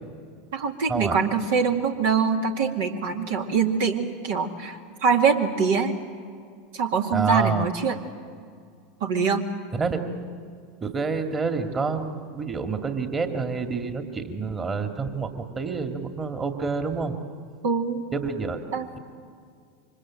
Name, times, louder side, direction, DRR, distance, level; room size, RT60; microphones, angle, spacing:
voice 1, 0.5-5.9 6.7-8.0 9.0-9.5 17.6-18.0 18.7-18.9, right 5 dB, 65° right, 3 dB, 2.2 m, -24 dB
voice 2, 7.1-7.7 9.7-10.0 10.8-17.1 18.1-18.6, right 4 dB, 25° right, 6 dB, 2.3 m, -28 dB
28.0 x 24.5 x 7.7 m, 2.2 s
hypercardioid pair, 85°, 0 cm